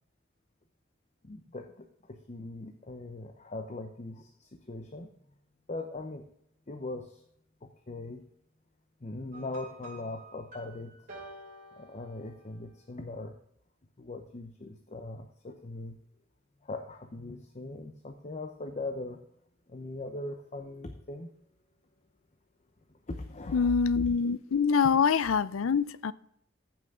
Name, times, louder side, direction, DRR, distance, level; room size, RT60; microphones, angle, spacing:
voice 1, 1.2-5.1 5.7-6.2 6.7-7.2 7.6-8.2 9.0-10.9 11.8-13.3 14.0-16.0 16.6-19.2 19.7-21.3 23.1-23.7, left 2 dB, 35° left, 6 dB, 0.8 m, -40 dB
sound 1, 9.3-12.7, right 2 dB, 45° right, 4.8 m, -49 dB
voice 2, 23.5-26.1, left 6 dB, 90° left, 18 dB, 0.5 m, -25 dB
14.5 x 6.1 x 3.7 m, 0.71 s
head